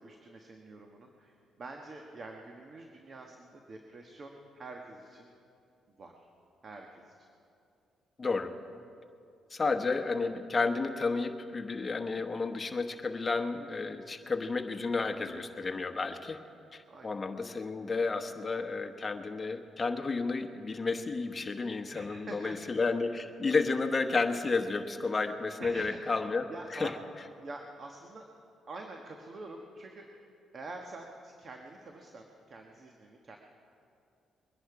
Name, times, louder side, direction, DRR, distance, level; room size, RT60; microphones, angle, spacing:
voice 1, 0.0-5.3 6.0-6.3 6.6-7.1 16.9-17.2 21.9-22.8 25.6-26.2 26.5-26.9 27.4-28.3 28.7-30.2 30.5-33.4, right 2 dB, 45° right, 2 dB, 1.3 m, -46 dB
voice 2, 8.2-8.5 9.5-16.4 16.7-26.9, left 4 dB, 30° left, 6 dB, 1.1 m, -32 dB
22.5 x 10.5 x 4.9 m, 2.5 s
cardioid pair, 90°, 0 cm